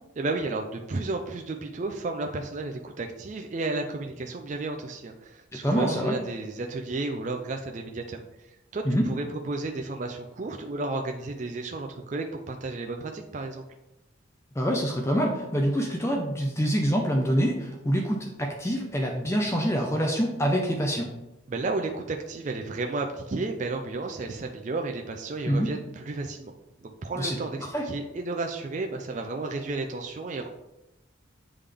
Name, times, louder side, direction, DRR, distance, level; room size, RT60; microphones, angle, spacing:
voice 1, 0.2-13.6 21.5-26.5 26.8-27.6 27.8-30.5, right 3 dB, 40° right, 4 dB, 0.4 m, -32 dB
voice 2, 5.6-6.2 8.8-9.0 14.6-21.1 25.5-25.7 27.1-27.4 27.7-27.9, equal, 15° left, 1 dB, 0.5 m, -26 dB
8.3 x 3.7 x 3.4 m, 0.97 s
head